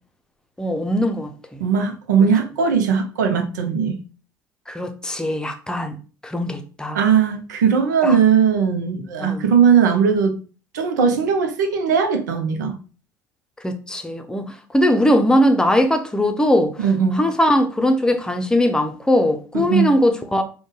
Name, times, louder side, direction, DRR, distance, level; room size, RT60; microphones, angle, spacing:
voice 1, 0.6-1.6 4.7-6.0 6.2-7.0 8.0-8.2 9.2-9.4 13.6-16.7 17.1-20.4, left 1 dB, 10° left, 0.7 m, -20 dB
voice 2, 1.6-4.0 6.9-10.4 10.7-12.8 16.8-17.3 19.5-19.9, right 6 dB, 80° right, 0.7 m, -18 dB
3.8 x 2.3 x 3.7 m
hypercardioid pair, 60°, 9 cm